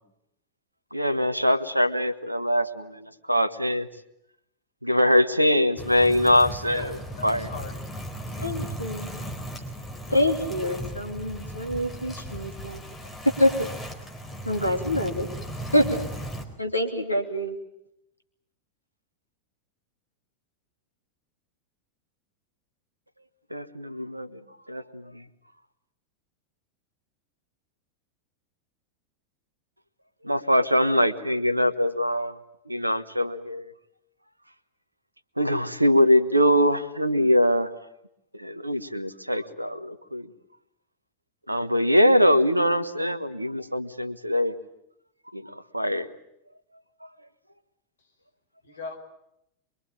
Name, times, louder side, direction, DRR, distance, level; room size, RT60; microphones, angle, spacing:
voice 1, 0.9-3.9 4.8-7.0 7.2-7.5 23.5-24.4 24.7-25.2 30.2-32.3 32.7-33.7 35.4-37.7 38.4-40.3 41.5-44.5 45.3-46.1, equal, 85° right, 14 dB, 1.4 m, -23 dB
sound 1, 5.8-16.4, equal, 15° left, 4.5 m, -37 dB
voice 2, 6.6-7.7 48.6-49.0, left 4 dB, 65° left, 6 dB, 5.0 m, -38 dB
voice 3, 8.4-9.1 10.1-12.8 13.4-13.7 14.4-15.3 15.7-16.0 16.6-17.6, left 1 dB, 85° left, 4 dB, 3.0 m, -26 dB
24.5 x 23.5 x 8.8 m, 0.81 s
figure-of-eight pair, 90°, 0 cm